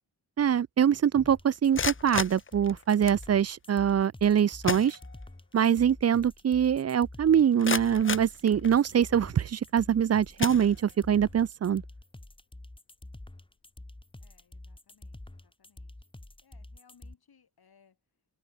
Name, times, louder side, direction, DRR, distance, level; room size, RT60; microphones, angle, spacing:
voice 1, 0.4-5.0 5.5-11.8, right 8 dB, 45° right, 0.4 m, -24 dB
sound 1, 1.1-17.1, left 1 dB, 15° left, 2.3 m, -47 dB
sound 2, 1.5-3.3 4.2-4.3 4.6-5.5 5.9-6.0 6.5-6.6 7.2-9.1 9.7-9.9 10.4-11.2, left 5 dB, 35° left, 0.7 m, -34 dB
voice 2, 14.2-15.9 16.4-18.0, left 6 dB, 85° left, 6.0 m, -64 dB
wide cardioid pair, 100°, 36 cm